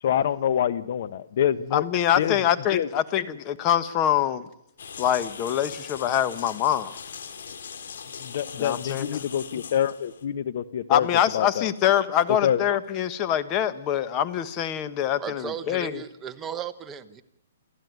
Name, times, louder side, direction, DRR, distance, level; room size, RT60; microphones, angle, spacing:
voice 1, 0.0-1.8 2.2-2.4 2.7-2.9 8.2-11.1 11.3-11.7 12.4-12.6, left 9 dB, 50° left, 15 dB, 1.1 m, -26 dB
voice 2, 1.7-4.5 5.0-6.9 8.6-9.2 10.9-15.9, left 10 dB, 25° left, 12 dB, 1.3 m, -24 dB
sound 1, 4.8-10.2, left 6 dB, 70° left, 2.4 m, -40 dB
voice 3, 15.2-17.2, right 8 dB, 15° right, 10 dB, 1.0 m, -35 dB
28.5 x 14.5 x 9.5 m, 0.76 s
hypercardioid pair, 155°, 0 cm